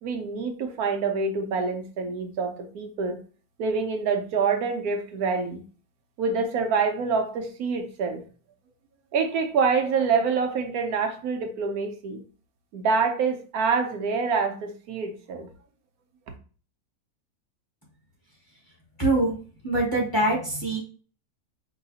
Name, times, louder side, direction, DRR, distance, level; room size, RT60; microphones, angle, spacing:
voice 1, 0.0-3.2 3.6-5.6 6.2-8.2 9.1-12.2 12.7-15.5, right 5 dB, 75° right, 5 dB, 1.1 m, -26 dB
voice 2, 19.0-19.3 19.6-20.8, right 2 dB, 15° left, -3 dB, 1.3 m, -23 dB
4.7 x 2.9 x 2.7 m, 0.39 s
omnidirectional pair, 1.6 m